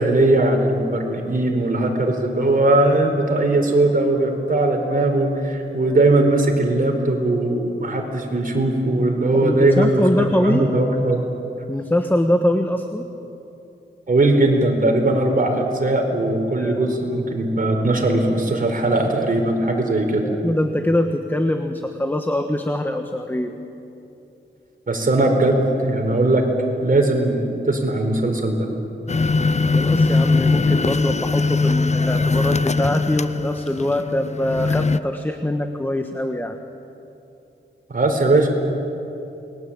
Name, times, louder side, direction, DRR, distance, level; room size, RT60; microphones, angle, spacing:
voice 1, 0.0-11.2 14.1-20.3 24.9-26.4 26.8-28.7 37.9-38.5, right 2 dB, 45° right, 3 dB, 4.4 m, -19 dB
voice 2, 9.3-10.6 11.7-13.1 16.6-16.9 20.2-23.5 29.7-36.6, left 1 dB, 10° left, 6 dB, 1.4 m, -23 dB
sound 1, 29.1-35.0, left 3 dB, 35° left, 0.7 m, -20 dB
29.0 x 21.5 x 8.8 m, 2.9 s
wide cardioid pair, 110°, 20 cm